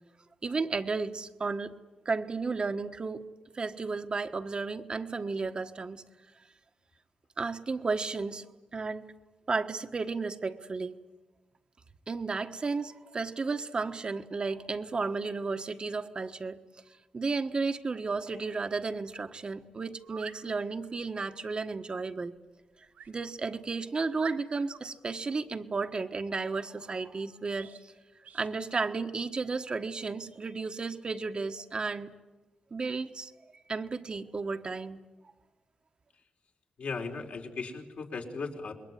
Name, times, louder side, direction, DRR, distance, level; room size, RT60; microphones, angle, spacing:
voice 1, 0.4-1.8 2.0-3.2 3.5-6.0 7.4-8.4 8.7-9.1 9.5-11.0 12.1-16.6 17.1-22.3 23.1-27.7 28.3-32.1 32.7-33.3 33.7-35.0, right 4 dB, 40° right, 7 dB, 1.4 m, -33 dB
sound 1, 20.0-20.4 22.9-23.1 23.7-23.8 24.2-24.8 27.5-27.8 28.2-28.5, right 7 dB, 90° right, 2.9 m, -45 dB
voice 2, 36.8-38.7, left 4 dB, 65° left, 2 dB, 4.1 m, -37 dB
28.0 x 22.0 x 9.6 m, 1.2 s
wide cardioid pair, 110°, 3 cm